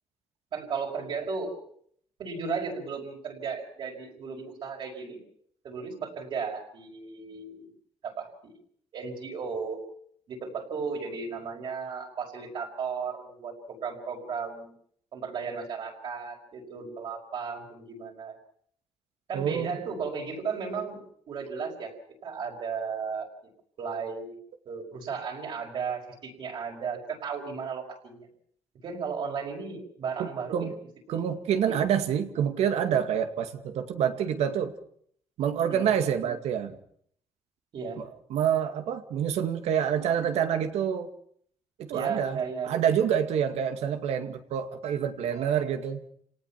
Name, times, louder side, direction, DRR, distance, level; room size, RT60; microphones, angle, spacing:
voice 1, 0.5-1.6 2.2-5.2 5.6-7.7 8.0-8.5 8.9-9.8 10.3-14.7 15.1-18.4 19.3-21.0 21.3-21.9 22.2-23.3 23.8-24.4 24.7-28.3 28.8-30.7 31.1-31.3 31.6-31.8 35.7-35.9 37.7-38.0 41.9-42.7, right 5 dB, 50° right, 0 dB, 5.4 m, -35 dB
voice 2, 19.3-19.8 30.2-30.7 31.1-34.7 35.4-36.8 38.0-41.1 41.8-46.0, right 8 dB, 85° right, 8 dB, 2.3 m, -27 dB
29.5 x 18.5 x 5.9 m, 0.63 s
cardioid pair, 175°, 11 cm